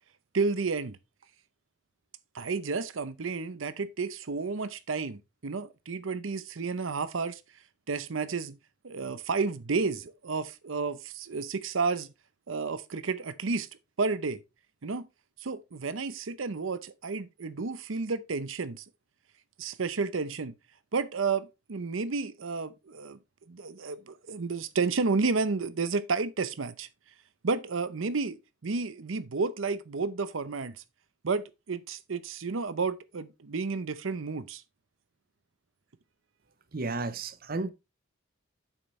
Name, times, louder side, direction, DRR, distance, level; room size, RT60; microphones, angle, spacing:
voice 1, 0.3-1.0 2.3-7.4 7.9-8.6 8.8-12.1 12.5-13.7 14.0-14.4 14.8-15.1 15.4-18.8 19.6-20.5 20.9-23.2 23.5-26.9 27.4-28.4 28.6-30.8 31.2-34.6, right 4 dB, 85° right, 0.7 m, -31 dB
voice 2, 36.7-37.7, right 3 dB, 50° right, 0.8 m, -32 dB
8.9 x 7.4 x 3.2 m
head